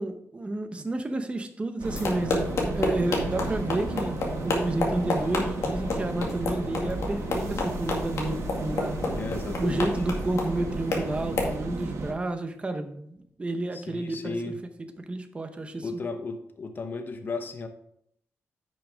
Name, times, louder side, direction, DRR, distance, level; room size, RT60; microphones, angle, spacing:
voice 1, 0.0-9.0 9.6-16.0, right 2 dB, 20° right, 7 dB, 0.9 m, -31 dB
sound 1, 1.8-11.6, left 2 dB, 75° left, 2.0 m, -31 dB
sound 2, 1.8-12.1, right 3 dB, 70° right, 1.5 m, -35 dB
voice 2, 9.1-9.9 13.7-14.6 15.8-17.7, left 3 dB, 40° left, 6 dB, 0.9 m, -34 dB
10.0 x 6.4 x 3.5 m, 0.70 s
wide cardioid pair, 125°, 5 cm